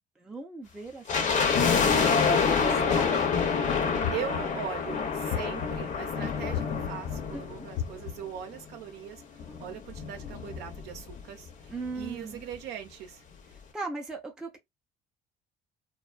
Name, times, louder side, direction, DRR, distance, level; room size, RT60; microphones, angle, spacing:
voice 1, 0.0-3.4 7.3-7.7 11.7-12.4 13.7-14.6, right 3 dB, 5° right, 0.4 m, -39 dB
sound 1, 1.1-8.4 8.6-8.7 9.4-11.2 11.5-11.6 11.8-12.1 12.5-12.6, left 5 dB, 50° left, 0.6 m, -27 dB
sound 2, 4.0-4.7 5.3-5.9 6.5-7.2 7.8-8.4, left 9 dB, 80° left, 0.8 m, -36 dB
voice 2, 4.1-13.2, right 9 dB, 80° right, 0.6 m, -40 dB
2.5 x 2.2 x 2.3 m
cardioid pair, 110°, 17 cm